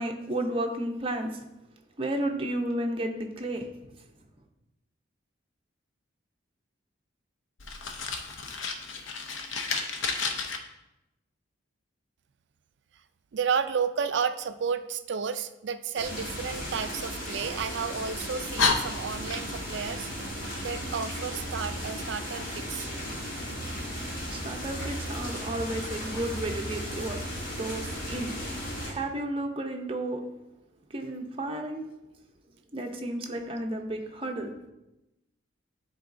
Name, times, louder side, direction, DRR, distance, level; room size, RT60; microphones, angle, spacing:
voice 1, 0.0-1.4 2.0-3.7 24.3-27.2 27.6-28.3 28.8-30.2 30.9-31.9 32.7-34.5, right 1 dB, 30° right, 2 dB, 0.6 m, -32 dB
Fire, 7.6-10.6 16.5-17.7 18.2-18.3 18.6-19.8, left 4 dB, 85° left, 0.7 m, -31 dB
voice 2, 13.3-20.1 20.6-22.9, right 6 dB, 65° right, 11 dB, 0.4 m, -32 dB
sound 1, 15.9-28.9, equal, 45° left, 1.5 m, -36 dB
9.7 x 4.0 x 2.6 m, 0.94 s
head